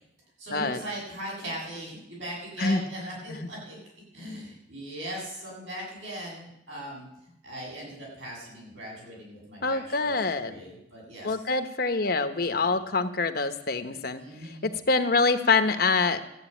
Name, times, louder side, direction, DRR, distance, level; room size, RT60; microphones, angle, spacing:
voice 1, 0.4-3.8 4.1-7.1 7.4-10.2 10.5-11.3 12.6-12.7 14.1-14.7, right 1 dB, 80° right, -4 dB, 7.7 m, -39 dB
voice 2, 9.6-10.5 11.2-16.2, left 3 dB, 50° left, 9 dB, 0.9 m, -26 dB
14.0 x 8.0 x 9.1 m, 0.83 s
head